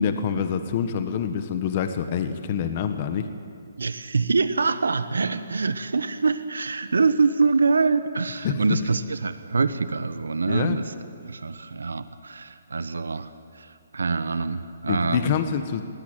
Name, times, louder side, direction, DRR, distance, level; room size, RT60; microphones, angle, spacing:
voice 1, 0.0-3.3 8.4-8.6 10.5-10.8 14.9-15.8, left 7 dB, 40° left, 9 dB, 1.4 m, -26 dB
voice 2, 3.8-10.8 11.2-15.3, right 4 dB, 85° right, 12 dB, 1.1 m, -25 dB
21.0 x 17.0 x 9.1 m, 2.3 s
hypercardioid pair, 145°, 0 cm